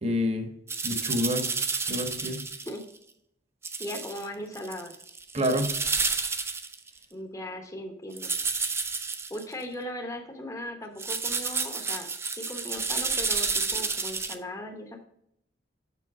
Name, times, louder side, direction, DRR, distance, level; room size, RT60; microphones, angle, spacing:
voice 1, 0.0-0.5 0.8-1.5 1.9-2.4 5.3-5.7, left 1 dB, 35° right, 5 dB, 1.2 m, -27 dB
sound 1, 0.7-2.8 3.6-4.3 4.5-6.9 8.2-9.4 11.0-14.3, right 4 dB, 15° right, 0.5 m, -30 dB
voice 2, 3.8-5.0 7.1-8.3 9.3-15.0, left 1 dB, 20° left, 3 dB, 1.0 m, -38 dB
7.0 x 5.8 x 5.0 m, 0.72 s
head